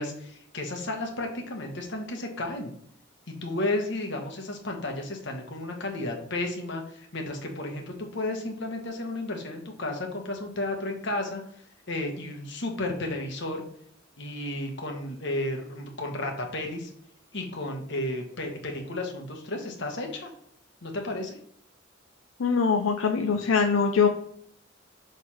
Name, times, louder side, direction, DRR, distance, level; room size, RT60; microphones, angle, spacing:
voice 1, 0.0-2.7 3.3-11.4 11.9-13.6 14.2-16.9 17.3-20.3 20.8-21.4, left 2 dB, 60° left, 2 dB, 1.3 m, -33 dB
voice 2, 22.4-24.1, left 5 dB, 90° left, 5 dB, 0.5 m, -22 dB
6.5 x 3.5 x 4.3 m, 0.67 s
head